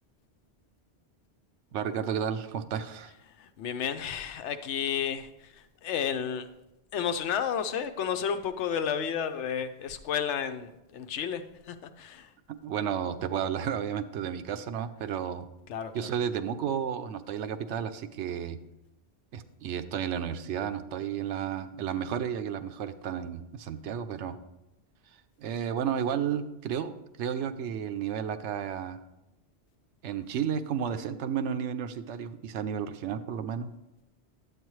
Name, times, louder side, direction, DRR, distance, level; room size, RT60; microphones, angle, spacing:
voice 1, 1.7-3.1 12.5-15.5 15.9-18.6 19.3-24.4 25.4-29.0 30.0-33.7, right 8 dB, 90° right, 11 dB, 0.9 m, -32 dB
voice 2, 3.4-6.5 6.9-12.3 15.7-16.1, left 8 dB, 85° left, 10 dB, 0.9 m, -32 dB
10.5 x 8.1 x 3.1 m, 0.94 s
omnidirectional pair, 1.2 m